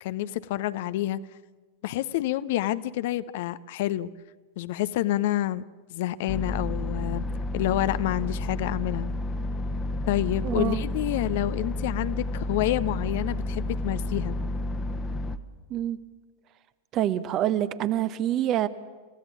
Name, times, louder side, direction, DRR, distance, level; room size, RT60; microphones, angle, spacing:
voice 1, 0.0-1.2 1.8-4.1 4.6-5.6 5.9-7.2 7.5-9.1 10.1-14.4, left 14 dB, 50° left, 15 dB, 0.8 m, -28 dB
sound 1, 6.3-15.4, left 1 dB, 20° left, 1.3 m, -31 dB
voice 2, 10.4-10.8 15.7-16.0 16.9-18.7, right 12 dB, 35° right, 13 dB, 1.2 m, -26 dB
28.5 x 16.0 x 8.4 m, 1.3 s
figure-of-eight pair, 90°, 0 cm